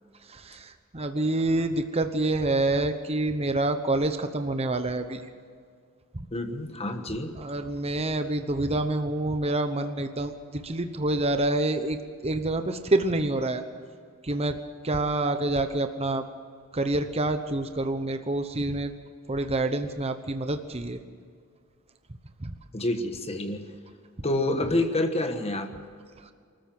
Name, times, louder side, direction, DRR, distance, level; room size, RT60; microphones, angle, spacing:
voice 1, 0.3-5.2 6.1-6.3 7.3-13.6 14.2-14.6 14.8-16.3 16.7-18.9 19.3-21.0 22.4-22.5, right 2 dB, 30° right, 8 dB, 1.0 m, -27 dB
voice 2, 6.3-7.3 22.7-23.7 24.2-25.7, left 1 dB, 30° left, 6 dB, 1.4 m, -28 dB
25.0 x 14.0 x 7.7 m, 2.2 s
head